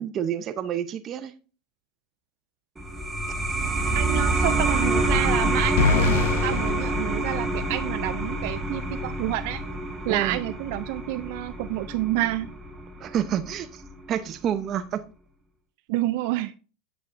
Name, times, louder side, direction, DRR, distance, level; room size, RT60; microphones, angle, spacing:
voice 1, 0.0-1.3 4.6-4.7 10.1-10.4 13.0-13.7 14.1-15.0, right 9 dB, 35° right, 0.7 m, -28 dB
sound 1, 2.8-13.9, right 1 dB, 10° right, 1.3 m, -27 dB
voice 2, 3.9-9.6 10.1-12.5 15.9-16.5, right 16 dB, 65° right, 0.3 m, -29 dB
sound 2, 5.8-7.9, left 4 dB, 85° left, 0.8 m, -25 dB
8.2 x 7.0 x 2.6 m
supercardioid pair, 145°, 0 cm